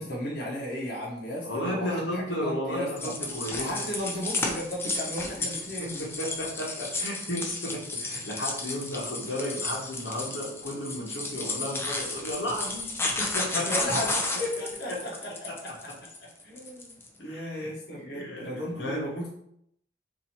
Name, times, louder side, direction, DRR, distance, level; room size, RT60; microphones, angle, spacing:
voice 1, 0.0-3.1 3.6-6.0 13.5-15.5 16.4-19.3, equal, 60° left, -5 dB, 0.9 m, -35 dB
voice 2, 1.4-3.9 5.8-12.9 13.2-13.8 14.9-15.0 17.3-19.1, left 1 dB, 85° left, -3 dB, 1.0 m, -34 dB
sound 1, 3.0-17.1, left 2 dB, 15° left, 0.4 m, -33 dB
2.8 x 2.6 x 4.1 m, 0.74 s
head